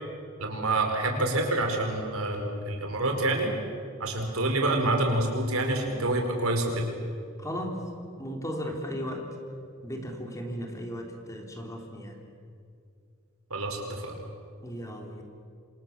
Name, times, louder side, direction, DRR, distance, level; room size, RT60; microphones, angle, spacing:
voice 1, 0.4-3.5 4.0-6.9 13.5-14.1, right 2 dB, 85° right, 3 dB, 4.9 m, -27 dB
voice 2, 7.4-7.8 8.2-9.3 9.8-12.2 14.6-15.2, equal, 15° left, 2 dB, 3.5 m, -36 dB
27.0 x 27.0 x 7.3 m, 2.3 s
head